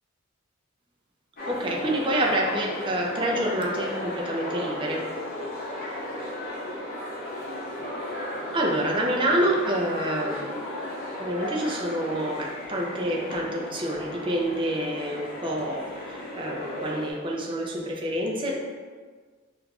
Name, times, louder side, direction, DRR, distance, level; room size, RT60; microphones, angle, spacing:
sound 1, 1.4-17.1, left 1 dB, 45° left, 0.7 m, -35 dB
voice 1, 1.5-5.1 8.5-10.7 11.2-18.6, right 1 dB, 25° right, -1 dB, 0.4 m, -27 dB
4.9 x 2.4 x 2.3 m, 1.5 s
head